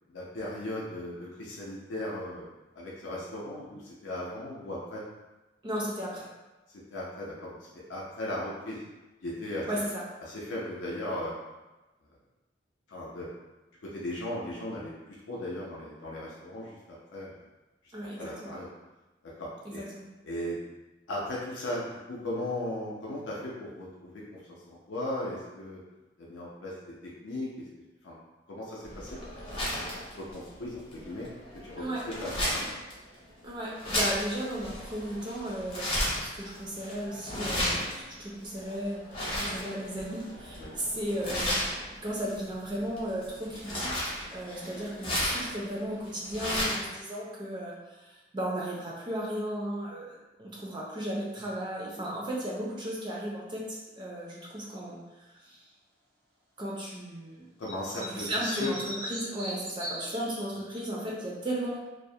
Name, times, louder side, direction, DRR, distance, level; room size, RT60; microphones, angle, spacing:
voice 1, 0.1-2.5 2.8-5.0 6.9-8.8 9.2-9.6 10.2-11.3 12.9-13.3 13.9-14.9 15.3-17.4 18.2-18.7 19.4-19.8 20.2-20.6 21.1-24.4 24.7-25.8 26.2-26.9 27.2-27.5 28.0-28.2 28.5-29.1 29.5-29.7 30.2-31.3 31.6-31.8 32.5-32.7 40.6-40.7 57.6-58.7, left 1 dB, 80° left, -5 dB, 0.5 m, -37 dB
voice 2, 5.6-6.3 9.7-10.0 17.9-18.5 19.6-20.1 31.8-32.0 33.4-35.9 36.2-41.6 42.0-44.1 44.3-55.0 55.4-55.6 56.6-57.5 57.9-61.8, right 1 dB, 25° right, -4 dB, 0.3 m, -35 dB
sound 1, 28.8-46.9, left 1 dB, 30° left, 0.6 m, -35 dB
sound 2, 57.6-60.8, equal, 75° right, 0.7 m, -39 dB
2.3 x 2.0 x 2.7 m, 1.1 s
head